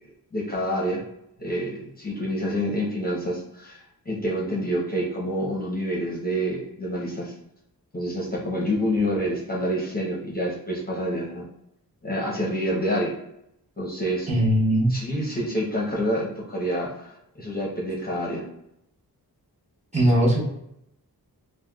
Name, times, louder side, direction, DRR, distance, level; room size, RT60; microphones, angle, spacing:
voice 1, 0.3-1.0 1.4-7.3 7.9-11.5 12.0-13.1 13.8-14.3 14.9-17.1 17.4-18.5, equal, 25° left, -4 dB, 0.7 m, -27 dB
voice 2, 14.3-14.9 19.9-20.4, right 1 dB, 20° right, -4 dB, 1.0 m, -20 dB
3.4 x 2.2 x 2.3 m, 0.79 s
wide cardioid pair, 85°, 39 cm